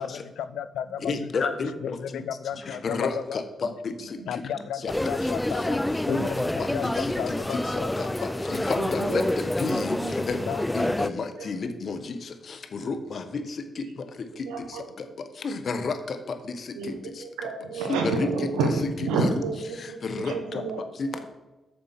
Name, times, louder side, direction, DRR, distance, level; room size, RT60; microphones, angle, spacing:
voice 1, 0.0-1.5 1.8-3.4 4.3-7.9 10.5-10.7, left 9 dB, 75° left, 14 dB, 0.5 m, -34 dB
voice 2, 1.0-2.2 2.6-4.4 4.7-4.9 5.6-5.7 6.1-6.2 6.6-17.2 17.7-18.3 19.2-19.3 19.7-20.6 20.9-21.1, left 4 dB, 55° left, 8 dB, 1.2 m, -32 dB
sound 1, 4.9-11.1, left 1 dB, 10° left, 0.4 m, -28 dB
voice 3, 8.7-9.2 10.0-10.4 11.4-11.5 14.5-15.1 16.7-20.8 21.1-21.2, right 3 dB, 85° right, 4 dB, 1.4 m, -30 dB
8.2 x 6.8 x 5.9 m, 1.1 s
hypercardioid pair, 45°, 0 cm